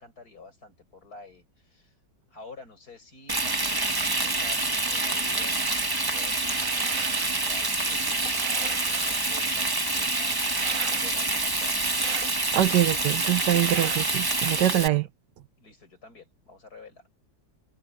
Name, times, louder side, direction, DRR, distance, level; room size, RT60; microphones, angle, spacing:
voice 1, 0.0-1.9 2.3-11.9 15.6-17.0, left 3 dB, 60° left, 6.4 m, -49 dB
Frying (food), 3.3-14.9, right 2 dB, 15° right, 0.9 m, -27 dB
sound 1, 6.3-7.4 7.8-14.0, right 10 dB, 60° right, 1.0 m, -38 dB
voice 2, 12.5-15.1, right 13 dB, 80° right, 1.4 m, -24 dB
omnidirectional pair, 1.9 m